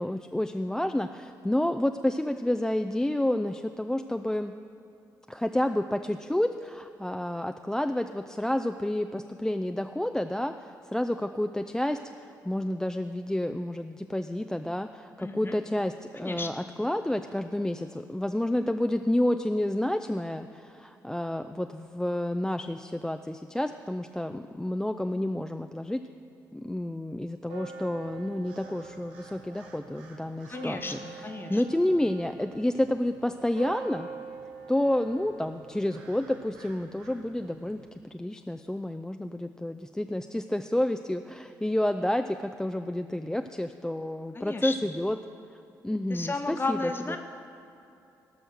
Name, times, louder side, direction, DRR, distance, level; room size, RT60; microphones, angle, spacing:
voice 1, 0.0-4.5 5.3-26.0 26.5-30.8 31.1-34.1 34.7-37.8 38.1-45.2 45.8-46.8 47.1-47.2, left 1 dB, 5° left, 8 dB, 0.4 m, -30 dB
voice 2, 15.2-15.6 16.1-16.5 30.4-31.6 44.3-45.0 46.1-47.2, left 3 dB, 20° left, 6 dB, 1.1 m, -34 dB
sound 1, 27.4-37.9, right 4 dB, 70° right, 1.1 m, -45 dB
17.5 x 6.3 x 6.4 m, 2.8 s
figure-of-eight pair, 40°, 10 cm